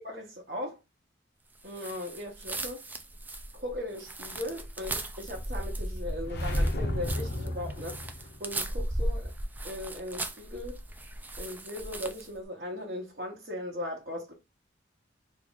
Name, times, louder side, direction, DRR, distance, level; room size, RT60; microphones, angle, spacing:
voice 1, 0.0-0.8 1.6-2.8 3.5-9.2 9.6-10.8 11.4-14.3, left 1 dB, 55° right, 1.0 m, -38 dB
sound 1, 1.7-12.4, right 1 dB, 10° right, 0.3 m, -36 dB
sound 2, 6.2-8.4, left 1 dB, 60° left, 0.7 m, -34 dB
3.0 x 2.4 x 3.7 m
head